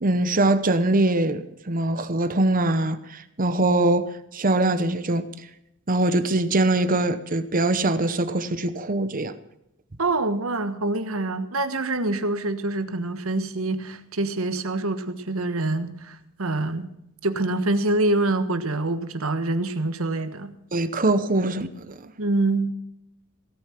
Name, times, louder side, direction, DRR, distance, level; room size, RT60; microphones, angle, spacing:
voice 1, 0.0-4.1 4.3-5.2 5.9-9.3 20.7-21.9, right 2 dB, 40° right, 12 dB, 0.9 m, -22 dB
voice 2, 10.0-16.9 17.2-20.5 22.2-22.7, right 2 dB, 75° right, 10 dB, 1.4 m, -25 dB
17.0 x 9.4 x 5.9 m, 0.83 s
head